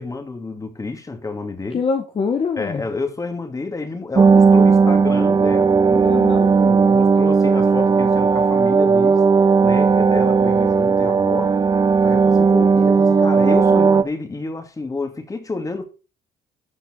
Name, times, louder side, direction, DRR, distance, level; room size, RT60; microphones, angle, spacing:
voice 1, 0.0-1.8 2.6-6.2 6.6-9.2 9.6-11.5 12.0-15.8, left 3 dB, 20° left, 2.5 m, -29 dB
voice 2, 1.7-2.8 6.0-6.5, left 5 dB, 35° left, 1.4 m, -24 dB
sound 1, 4.2-14.0, right 5 dB, 25° right, 0.8 m, -15 dB
13.0 x 5.1 x 6.5 m
cardioid pair, 110°, 17 cm